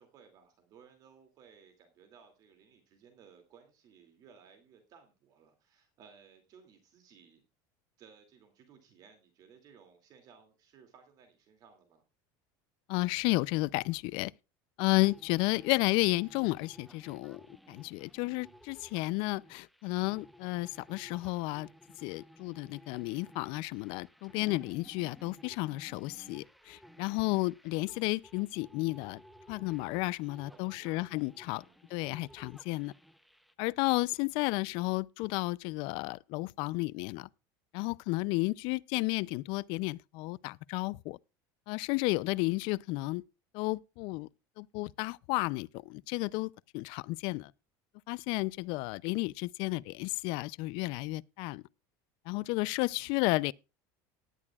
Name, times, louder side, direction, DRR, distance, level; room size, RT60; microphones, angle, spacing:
voice 1, 0.0-7.4 8.0-12.0 30.5-31.0 31.5-31.8 34.3-34.5 48.7-48.9 52.9-53.1, right 6 dB, 40° right, 2.5 m, -59 dB
voice 2, 12.9-14.3 14.8-17.4 17.7-21.7 22.0-29.2 29.5-31.6 31.9-32.9 33.6-37.3 37.7-41.2 41.7-43.2 43.5-44.3 44.6-47.5 48.1-51.6 52.3-53.5, left 22 dB, 55° left, 0.5 m, -32 dB
sound 1, 15.0-33.5, equal, ahead, 0.7 m, -56 dB
18.0 x 11.0 x 2.4 m
cardioid pair, 155°, 10 cm